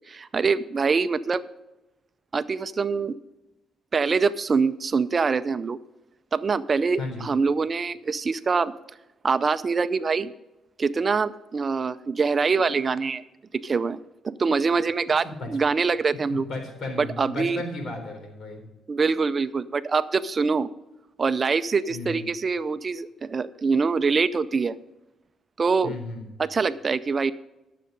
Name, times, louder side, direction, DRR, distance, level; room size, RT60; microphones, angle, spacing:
voice 1, 0.1-1.4 2.3-3.2 3.9-5.8 6.3-8.7 9.2-10.3 10.8-13.2 13.5-14.0 14.2-16.5 17.0-17.6 18.9-20.7 21.2-24.7 25.6-25.9 26.4-27.3, right 4 dB, 35° right, 14 dB, 0.5 m, -24 dB
voice 2, 16.3-18.6 21.9-22.2 25.8-26.2, left 2 dB, 65° left, 3 dB, 3.9 m, -34 dB
12.5 x 7.6 x 5.3 m, 1.0 s
cardioid pair, 90°, 0 cm